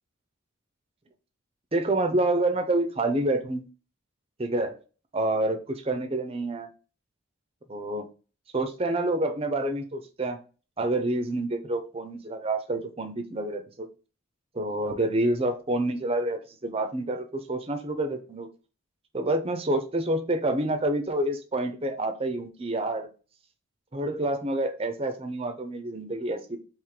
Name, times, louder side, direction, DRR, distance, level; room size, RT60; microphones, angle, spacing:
voice 1, 1.7-3.6 4.4-4.8 5.1-6.7 7.7-8.1 8.5-10.4 10.8-13.9 14.5-18.5 19.1-23.1 23.9-26.6, right 2 dB, 30° right, 7 dB, 0.6 m, -28 dB
3.5 x 3.1 x 4.8 m, 0.36 s
head